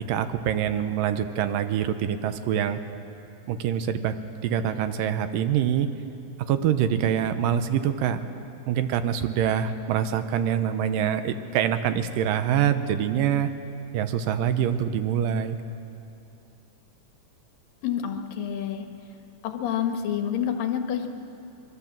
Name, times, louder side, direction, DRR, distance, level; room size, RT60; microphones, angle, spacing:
voice 1, 0.1-2.8 3.5-4.1 4.4-5.9 6.5-8.2 8.7-13.5 13.9-15.6, right 9 dB, 90° right, 10 dB, 2.6 m, -25 dB
voice 2, 17.8-18.8 19.4-21.1, left 9 dB, 85° left, 4 dB, 3.1 m, -28 dB
24.5 x 22.0 x 7.5 m, 2.6 s
omnidirectional pair, 3.9 m